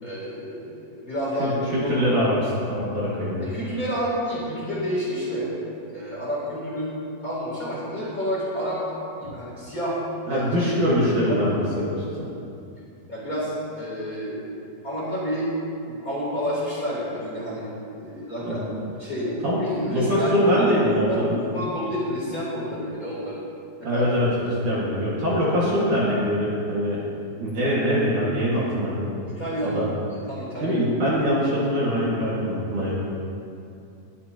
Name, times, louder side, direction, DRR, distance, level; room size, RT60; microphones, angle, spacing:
voice 1, 0.0-2.2 3.4-5.5 5.9-10.0 10.3-10.4 11.1-12.0 13.1-15.5 15.8-18.6 19.0-23.4 23.8-24.0 24.7-24.8 29.3-30.8, equal, 20° left, -8 dB, 3.3 m, -30 dB
voice 2, 1.4-3.5 10.3-12.0 18.4-18.7 19.4-19.6 19.9-21.4 23.8-27.0 27.4-29.1 29.6-29.9 30.6-33.0, equal, 50° right, -8 dB, 3.0 m, -23 dB
21.0 x 11.0 x 2.9 m, 2.6 s
omnidirectional pair, 5.0 m